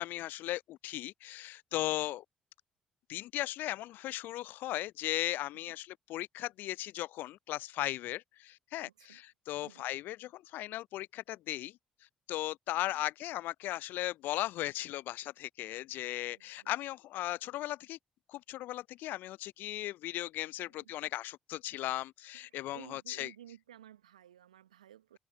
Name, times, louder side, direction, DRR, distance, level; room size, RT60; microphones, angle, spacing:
voice 1, 0.0-2.2 3.1-11.8 12.3-18.0 18.3-23.3, left 15 dB, 60° left, 0.6 m, -37 dB
voice 2, 1.7-2.1 5.5-5.8 8.8-9.2 9.6-9.9 12.7-13.0 16.3-16.7 20.6-20.9 22.3-25.2, right 11 dB, 80° right, 1.0 m, -56 dB
figure-of-eight pair, 45°, 4 cm